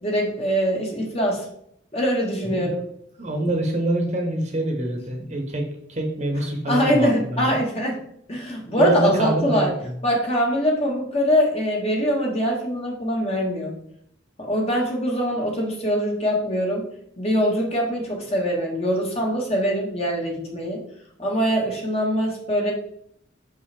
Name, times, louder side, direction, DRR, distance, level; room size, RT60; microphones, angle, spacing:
voice 1, 0.0-1.4 1.9-2.8 6.7-8.0 8.3-9.7 10.0-13.8 14.4-16.9 17.2-20.8 21.2-22.7, equal, 30° left, -1 dB, 1.5 m, -23 dB
voice 2, 3.2-7.6 8.7-9.7, right 1 dB, 35° right, 2 dB, 1.2 m, -25 dB
6.4 x 5.5 x 3.4 m, 0.70 s
head